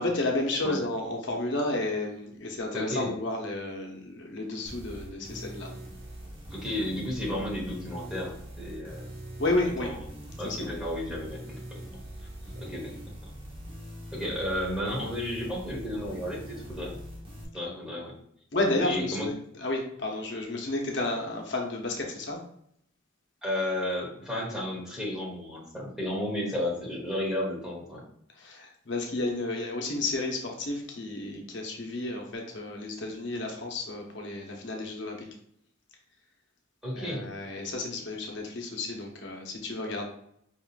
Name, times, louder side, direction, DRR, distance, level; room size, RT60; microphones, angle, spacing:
voice 1, 0.0-5.7 9.4-9.9 10.4-10.6 18.5-22.4 28.4-35.3 36.9-40.0, left 2 dB, 60° left, 1 dB, 0.8 m, -31 dB
voice 2, 2.7-3.1 6.5-9.1 9.6-10.1 10.4-11.8 12.6-13.1 14.1-17.0 17.5-18.2 18.8-19.3 23.4-28.0 36.8-37.3, left 1 dB, 5° right, -3 dB, 1.1 m, -33 dB
sound 1, 4.6-17.4, right 1 dB, 25° right, 1.0 m, -42 dB
5.3 x 3.6 x 2.4 m, 0.70 s
head